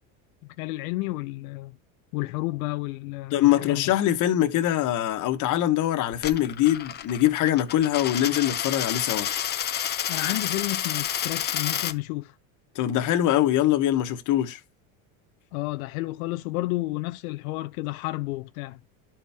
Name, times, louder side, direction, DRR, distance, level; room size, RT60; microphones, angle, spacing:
voice 1, 0.6-1.8 2.1-3.9 10.1-12.3 15.5-18.8, left 20 dB, 85° left, 0.6 m, -31 dB
voice 2, 3.3-9.3 12.7-14.6, left 12 dB, 45° left, 1.2 m, -23 dB
Coin (dropping), 6.1-11.9, left 10 dB, 25° left, 0.5 m, -30 dB
11.5 x 4.4 x 3.5 m
supercardioid pair, 125°, 41 cm